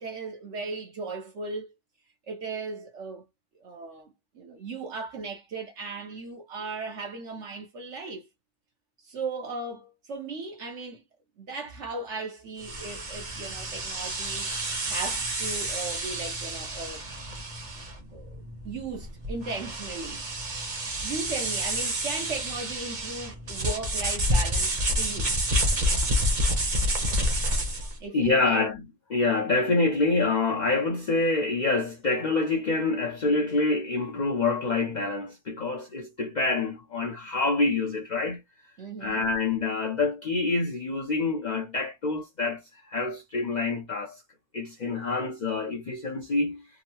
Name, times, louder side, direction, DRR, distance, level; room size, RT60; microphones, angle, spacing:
voice 1, 0.0-1.7 2.3-3.2 3.5-8.3 9.0-11.0 11.4-17.0 18.1-20.2 21.0-25.3 28.0-28.6 38.8-39.2, right 3 dB, 65° right, 1.1 m, -37 dB
sound 1, 12.6-28.0, equal, 40° right, 1.0 m, -29 dB
voice 2, 28.1-38.4 39.0-42.6 42.9-44.2 44.5-46.7, left 3 dB, 45° left, 0.7 m, -26 dB
3.6 x 2.1 x 2.8 m
omnidirectional pair, 1.3 m